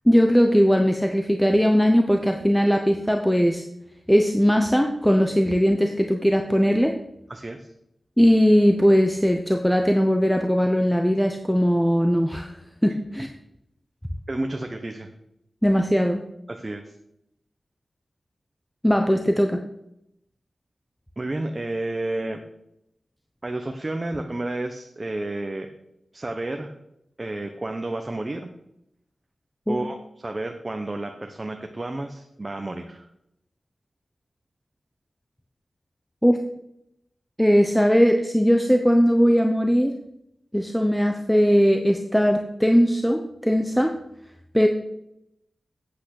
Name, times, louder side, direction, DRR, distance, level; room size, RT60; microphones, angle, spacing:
voice 1, 0.1-3.6 4.1-6.9 8.2-12.5 12.8-13.3 15.6-16.2 18.8-19.6 29.7-29.8 36.2-36.4 37.4-40.0 40.5-43.9 44.5-44.7, equal, 5° left, 4 dB, 0.8 m, -19 dB
voice 2, 7.3-7.7 14.3-15.1 16.5-16.8 21.2-22.4 23.4-25.7 26.1-26.7 27.2-28.5 29.7-33.1, right 2 dB, 25° right, 5 dB, 0.9 m, -31 dB
8.4 x 8.4 x 6.5 m, 0.81 s
wide cardioid pair, 120°, 0 cm